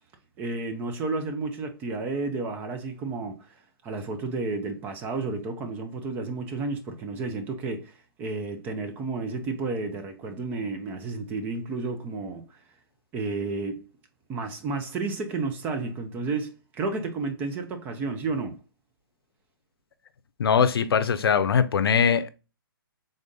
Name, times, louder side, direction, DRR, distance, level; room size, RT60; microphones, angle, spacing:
voice 1, 0.4-3.4 3.8-12.6 13.1-13.9 14.3-18.6, right 3 dB, 15° right, 0.5 m, -31 dB
voice 2, 20.4-22.3, left 6 dB, 80° left, 0.5 m, -21 dB
3.7 x 2.6 x 3.5 m
hypercardioid pair, 155°, 12 cm